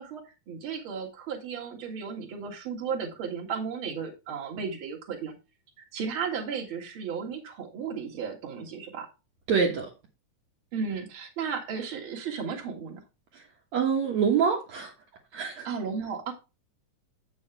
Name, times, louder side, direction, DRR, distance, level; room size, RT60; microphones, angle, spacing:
voice 1, 0.0-5.4 5.8-9.1 10.7-13.0 15.6-16.3, right 6 dB, 45° right, 2.6 m, -34 dB
voice 2, 9.5-9.9 13.3-13.5 13.7-14.9 15.3-15.7, right 6 dB, 65° right, 2.5 m, -25 dB
8.7 x 7.2 x 3.3 m
omnidirectional pair, 3.7 m